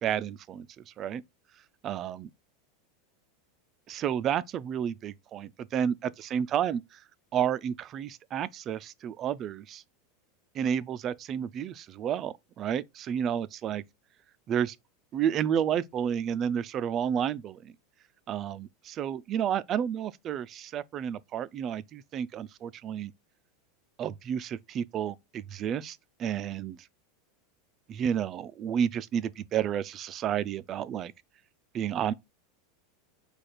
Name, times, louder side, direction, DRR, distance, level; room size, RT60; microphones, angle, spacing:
voice 1, 0.0-1.2 1.8-2.3 3.9-7.0 7.3-9.8 10.5-13.8 14.5-14.8 15.1-17.7 18.3-23.1 24.0-26.8 27.9-31.1 31.7-32.1, right 9 dB, 35° right, 0.3 m, -31 dB
4.9 x 2.3 x 4.2 m
supercardioid pair, 130°, 0 cm